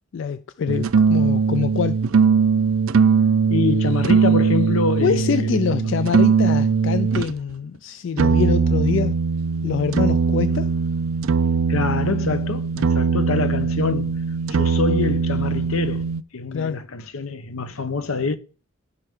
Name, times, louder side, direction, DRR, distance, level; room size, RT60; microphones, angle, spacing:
voice 1, 0.1-2.0 5.0-9.2 9.6-10.7 16.5-16.8, left 6 dB, 60° left, 0.4 m, -25 dB
sound 1, 0.7-7.3 8.2-16.2, right 5 dB, 80° right, 0.5 m, -20 dB
voice 2, 3.5-5.9 11.7-14.2 14.5-16.0 16.3-18.3, left 3 dB, 85° left, 0.9 m, -25 dB
14.0 x 5.6 x 3.7 m
head